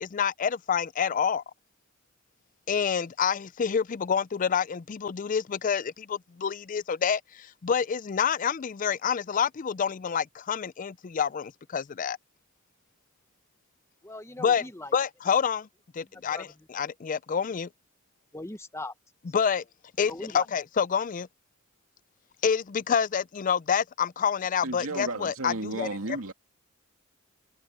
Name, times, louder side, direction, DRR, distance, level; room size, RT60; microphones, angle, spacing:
voice 1, 0.0-1.4 2.7-12.2 14.4-14.6 14.9-15.7 15.9-17.7 19.3-19.6 20.0-21.3 22.4-25.9, left 7 dB, 40° left, 0.4 m, -27 dB
voice 2, 14.0-14.9 16.1-16.7 18.3-18.9 20.1-20.5, left 2 dB, 15° left, 1.0 m, -40 dB
voice 3, 24.6-26.3, right 2 dB, 85° right, 2.2 m, -33 dB
open air
head